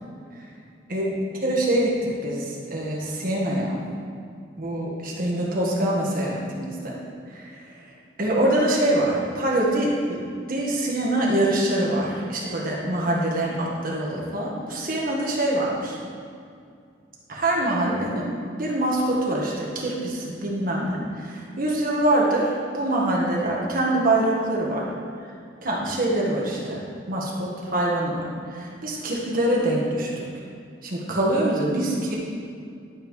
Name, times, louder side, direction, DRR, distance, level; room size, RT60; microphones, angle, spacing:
voice 1, 1.4-1.9 2.2-3.8 4.6-6.9 7.3-7.5 8.2-9.9 10.2-16.0 17.3-18.3 18.6-24.9 25.6-26.8 27.1-30.2 30.8-32.1, right 1 dB, 50° right, -4 dB, 1.5 m, -24 dB
11.5 x 5.4 x 3.2 m, 2.3 s
head